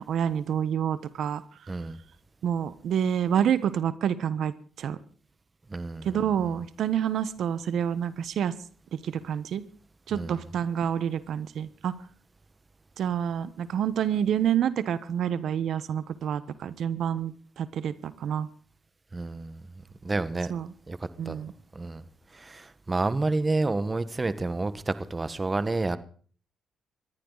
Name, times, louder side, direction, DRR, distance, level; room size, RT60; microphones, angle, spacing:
voice 1, 0.0-1.7 2.4-5.0 6.0-8.5 8.9-9.6 10.1-11.9 13.0-18.5 20.5-20.7 21.2-21.5, right 9 dB, 70° right, 14 dB, 1.2 m, -28 dB
voice 2, 1.7-2.0 5.7-6.2 10.1-10.4 19.1-19.6 20.0-20.5 20.9-21.0 21.2-21.4 21.7-22.0 22.3-26.0, right 3 dB, 25° right, 13 dB, 1.4 m, -29 dB
21.0 x 14.5 x 4.1 m, 0.43 s
cardioid pair, 90°, 0 cm